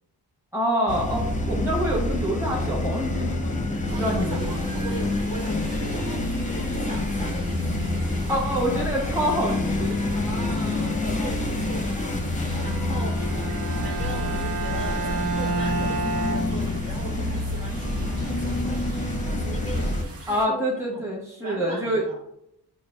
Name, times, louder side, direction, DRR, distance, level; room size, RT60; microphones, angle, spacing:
voice 1, 0.5-3.3 3.9-4.5 8.3-10.0 10.7-10.8 20.3-22.0, equal, 5° right, -3 dB, 1.1 m, -26 dB
sound 1, 0.9-20.0, left 2 dB, 20° left, 0.6 m, -27 dB
voice 2, 3.6-7.8 10.1-21.1 21.4-22.2, right 2 dB, 55° right, -4 dB, 1.4 m, -40 dB
sound 2, 3.9-20.5, right 1 dB, 35° right, 0.8 m, -44 dB
Bowed string instrument, 13.1-17.2, right 3 dB, 80° right, 0.7 m, -30 dB
6.6 x 2.5 x 2.2 m, 0.76 s
wide cardioid pair, 95°, 40 cm